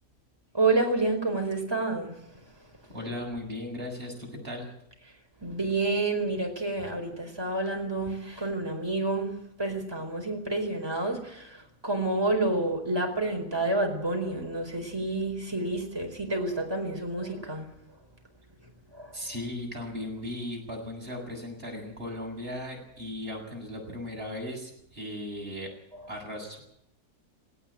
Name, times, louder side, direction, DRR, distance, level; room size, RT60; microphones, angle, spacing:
voice 1, 0.5-2.4 5.4-17.7 18.9-19.3 25.9-26.0, right 2 dB, 15° right, 3 dB, 4.7 m, -29 dB
voice 2, 2.9-4.7 19.1-25.7 26.1-26.6, left 1 dB, 40° right, 0 dB, 7.7 m, -37 dB
18.5 x 18.0 x 8.8 m, 0.77 s
omnidirectional pair, 1.6 m